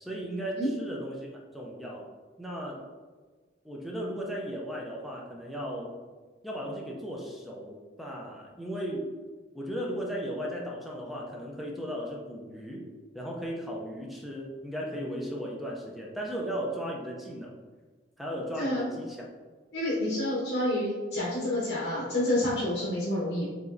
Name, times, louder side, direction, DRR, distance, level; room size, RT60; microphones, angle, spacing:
voice 1, 0.0-2.1 2.4-2.9 3.6-5.9 6.4-9.1 9.5-12.8 13.1-17.5 18.2-19.3, equal, ahead, -2 dB, 0.4 m, -36 dB
voice 2, 18.6-18.9 19.7-23.4, left 1 dB, 65° left, -8 dB, 1.1 m, -28 dB
4.8 x 3.1 x 2.6 m, 1.4 s
head